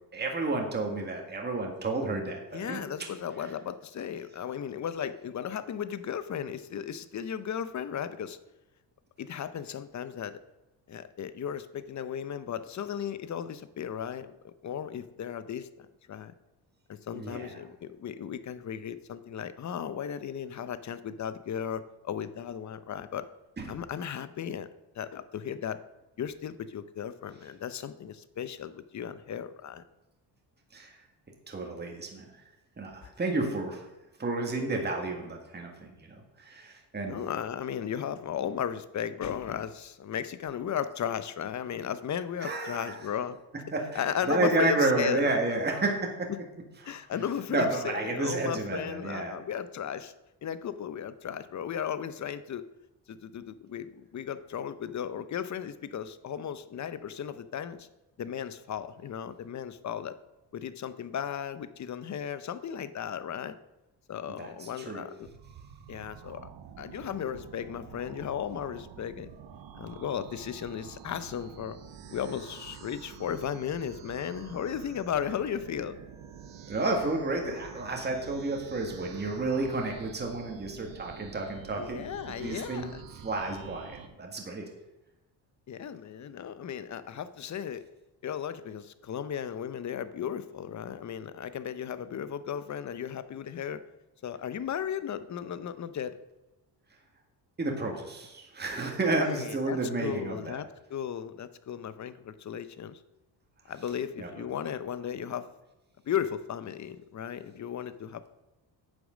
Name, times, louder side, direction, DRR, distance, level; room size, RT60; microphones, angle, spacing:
voice 1, 0.1-2.8 17.2-17.6 23.6-23.7 30.7-31.0 31.5-32.3 32.8-33.9 34.2-37.2 42.4-43.0 43.7-46.3 46.8-46.9 47.5-49.3 64.4-65.1 76.7-83.0 83.2-84.7 97.6-100.6 104.2-104.3, right 2 dB, 25° right, 1 dB, 1.8 m, -31 dB
voice 2, 2.5-8.4 9.2-10.4 10.9-16.3 16.9-23.3 23.7-24.7 24.9-25.8 26.2-29.8 37.1-43.4 43.9-45.4 46.3-46.4 46.8-50.1 50.4-52.6 53.1-57.9 58.2-60.2 60.5-63.6 64.1-65.3 65.9-66.5 66.8-69.3 69.8-71.8 72.1-76.0 81.8-83.0 85.7-87.8 88.2-93.8 94.2-96.2 99.2-103.0 103.7-105.5 106.1-108.3, left 8 dB, 40° left, 14 dB, 0.7 m, -35 dB
sound 1, 65.2-84.1, right 8 dB, 80° right, 1.3 m, -48 dB
8.9 x 7.1 x 6.4 m, 0.99 s
cardioid pair, 110°, 44 cm